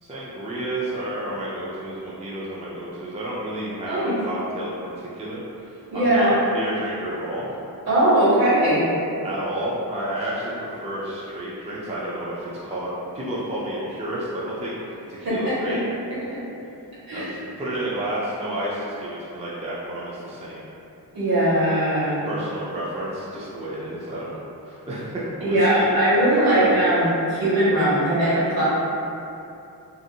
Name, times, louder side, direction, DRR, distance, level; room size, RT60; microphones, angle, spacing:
voice 1, 0.0-7.5 9.2-14.7 15.1-15.8 17.1-20.7 22.3-25.9 26.4-26.7, right 1 dB, 15° right, -8 dB, 0.4 m, -31 dB
voice 2, 3.8-4.1 5.9-6.3 7.9-8.9 15.2-15.8 16.1-16.4 17.1-17.3 21.1-22.2 25.4-28.6, right 1 dB, 60° right, -11 dB, 1.4 m, -20 dB
2.7 x 2.5 x 2.7 m, 2.8 s
wide cardioid pair, 110°, 40 cm